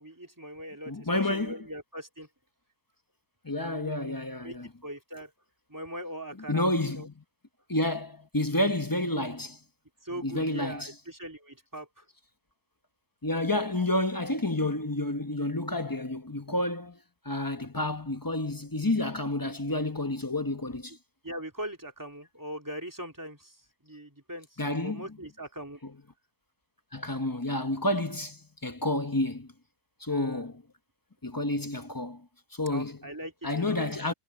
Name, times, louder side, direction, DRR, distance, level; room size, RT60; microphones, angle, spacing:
voice 1, 0.0-2.3 3.6-4.1 4.4-4.5 4.8-5.3 5.7-7.1 9.1-9.2 10.0-12.0 19.6-19.8 21.2-25.8 30.1-30.4 32.7-33.8, right 1 dB, 10° right, 3.2 m, -41 dB
voice 2, 0.9-1.6 3.4-4.7 6.5-7.2 7.7-9.6 10.2-10.9 13.2-17.0 17.2-21.0 24.6-25.1 25.8-25.9 26.9-29.5 30.0-30.6 31.2-32.3 32.5-33.0 33.4-34.1, left 1 dB, 15° left, 0.8 m, -30 dB
omnidirectional pair, 1.6 m